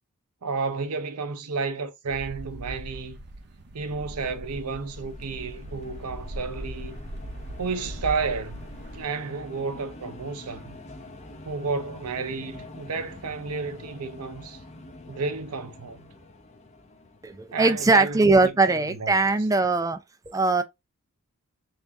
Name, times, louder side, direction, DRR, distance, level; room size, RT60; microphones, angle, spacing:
voice 1, 0.4-3.2 3.7-7.0 7.6-8.6 8.9-10.8 11.4-14.6 15.1-16.1 17.5-19.1, right 4 dB, 85° right, 0.7 m, -31 dB
sound 1, 2.1-9.0, right 1 dB, 50° right, 0.7 m, -39 dB
sound 2, 3.8-18.3, left 2 dB, 30° left, 0.6 m, -46 dB
voice 2, 17.2-20.0 20.3-20.6, right 3 dB, 15° right, 0.4 m, -21 dB
3.8 x 2.5 x 3.5 m
head